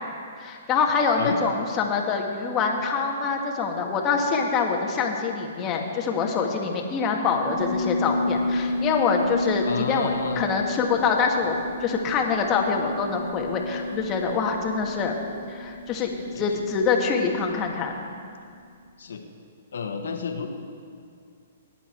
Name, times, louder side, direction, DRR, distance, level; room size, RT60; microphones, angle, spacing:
voice 1, 0.4-15.1 15.5-16.1 16.4-17.9, left 5 dB, 25° left, 1 dB, 1.9 m, -25 dB
Piano, 7.4-18.2, left 2 dB, 70° right, 2.9 m, -31 dB
voice 2, 9.7-10.4 16.0-16.1 16.3-16.6 19.0-19.2 19.7-20.5, left 5 dB, 75° left, 4 dB, 1.6 m, -31 dB
18.0 x 10.5 x 4.6 m, 2.3 s
hypercardioid pair, 135°, 0 cm